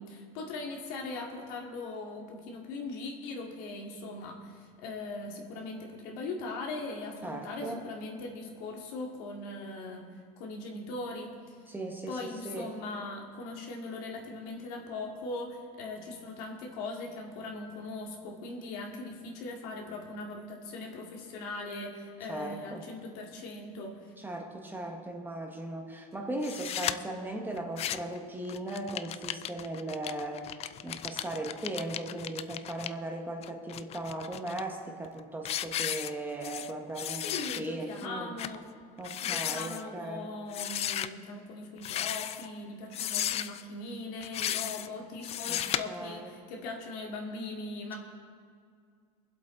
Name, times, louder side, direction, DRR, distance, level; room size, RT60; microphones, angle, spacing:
voice 1, 0.0-11.5 12.1-24.1 37.2-38.6 39.2-48.0, left 2 dB, 75° left, 0 dB, 2.3 m, -40 dB
voice 2, 7.2-7.8 11.7-12.2 12.4-12.7 22.3-22.8 24.2-30.5 30.8-38.3 39.0-40.3 45.5-45.6 45.9-46.3, right 1 dB, 10° right, 2 dB, 1.4 m, -38 dB
sound 1, 26.4-26.9 27.6-28.2 28.5-32.9 33.4-34.6 35.0-35.2 35.4-36.7 37.0-37.6 38.0-38.1 38.4-38.6 39.0-39.8 40.5-41.1 41.8-42.5 42.9-43.6 44.2-44.9 45.2-45.8, left 11 dB, 30° left, 0.4 m, -35 dB
23.5 x 8.0 x 3.9 m, 2.1 s
supercardioid pair, 135°, 20 cm